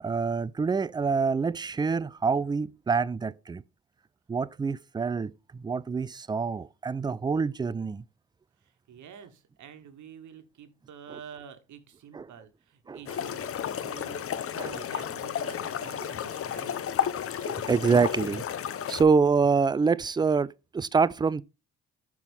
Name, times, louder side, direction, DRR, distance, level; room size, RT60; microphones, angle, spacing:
voice 1, 0.0-3.6 4.3-8.0 12.1-12.3 12.9-13.2 14.6-14.8 17.4-18.4 18.9-21.4, right 5 dB, 15° right, 0.3 m, -26 dB
voice 2, 8.9-13.5 13.8-16.8, right 7 dB, 60° right, 1.3 m, -48 dB
sound 1, 13.1-19.0, left 9 dB, 45° left, 0.7 m, -32 dB
6.1 x 5.8 x 3.5 m
supercardioid pair, 60°, 33 cm